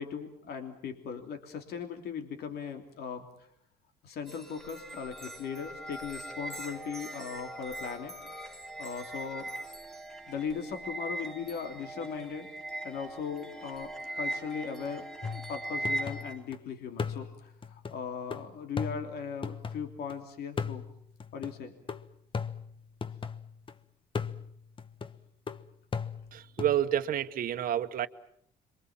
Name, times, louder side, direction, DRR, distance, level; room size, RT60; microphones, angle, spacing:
voice 1, 0.0-3.3 4.0-8.1 8.8-9.5 10.3-12.5 12.8-15.0 15.3-20.8 21.3-21.7, left 6 dB, 70° left, 3.1 m, -38 dB
sound 1, 4.3-16.4, right 1 dB, 5° left, 2.2 m, -40 dB
sound 2, 15.2-16.6 17.0-20.1 20.6-23.7 24.1-26.8, left 6 dB, 30° left, 1.1 m, -38 dB
voice 2, 26.3-28.1, right 11 dB, 55° right, 1.2 m, -29 dB
27.0 x 24.0 x 7.4 m
cardioid pair, 110°, 17 cm